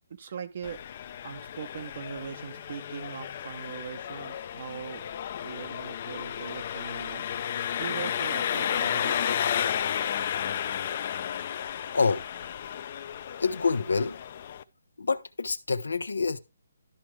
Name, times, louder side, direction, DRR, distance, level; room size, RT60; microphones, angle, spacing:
voice 1, 0.1-0.8 1.2-5.0 5.4-7.3 7.8-9.2, right 7 dB, 50° right, 0.9 m, -40 dB
Engine, 0.6-14.6, left 9 dB, 40° left, 0.7 m, -32 dB
voice 2, 11.9-12.2 13.4-14.2 15.0-16.4, left 4 dB, 85° left, 1.0 m, -26 dB
13.0 x 4.8 x 3.2 m
hypercardioid pair, 160°, 0 cm